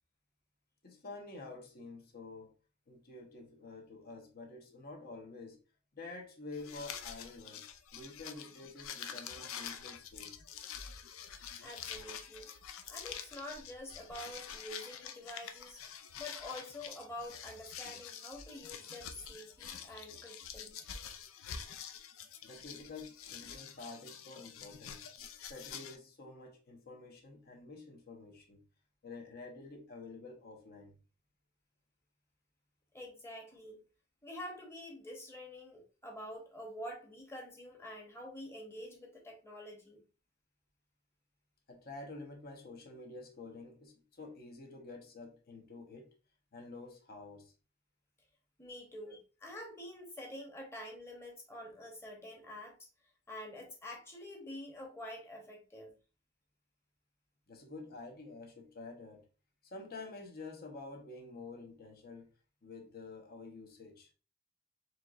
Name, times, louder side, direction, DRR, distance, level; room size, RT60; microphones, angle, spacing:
voice 1, 0.8-2.5 2.9-5.6 5.9-7.6 7.9-10.4 22.4-25.0 25.5-28.6 29.0-30.9 41.7-46.1 46.5-47.5 49.1-49.2 57.5-59.2 59.6-62.3 62.6-64.1, left 3 dB, 50° left, 1.0 m, -49 dB
sound 1, 6.5-26.0, left 8 dB, 85° left, 0.5 m, -47 dB
voice 2, 11.6-12.5 12.9-15.8 16.2-20.8 32.9-33.8 34.2-40.0 48.6-52.8 53.3-55.9, left 1 dB, 15° left, 1.0 m, -47 dB
4.5 x 3.0 x 2.4 m
head